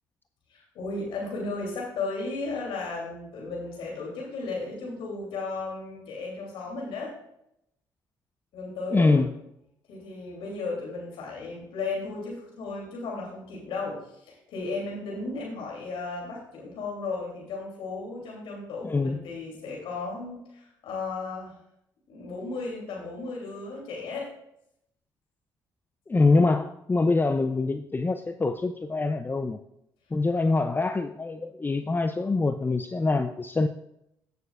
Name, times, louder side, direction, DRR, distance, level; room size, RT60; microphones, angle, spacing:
voice 1, 0.5-7.1 8.5-9.2 9.9-14.0 14.2-21.6 22.1-24.3, left 3 dB, 75° left, -3 dB, 2.9 m, -35 dB
voice 2, 8.9-9.3 18.8-19.2 26.1-29.6 30.1-33.7, left 3 dB, 20° left, 9 dB, 0.5 m, -24 dB
15.0 x 6.8 x 2.4 m, 0.78 s
supercardioid pair, 60°, 9 cm